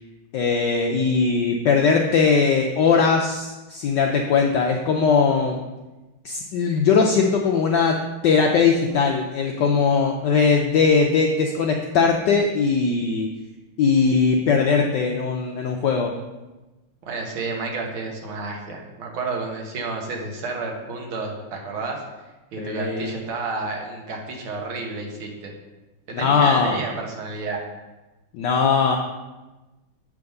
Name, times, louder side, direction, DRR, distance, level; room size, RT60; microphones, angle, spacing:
voice 1, 0.3-5.6 6.2-8.0 8.2-13.3 13.8-16.1 22.6-23.2 26.1-26.8 28.3-29.0, left 5 dB, 70° left, 2 dB, 1.1 m, -20 dB
voice 2, 17.0-25.5 26.1-27.6, right 3 dB, 75° right, 1 dB, 2.0 m, -31 dB
7.6 x 3.6 x 6.5 m, 1.1 s
omnidirectional pair, 2.3 m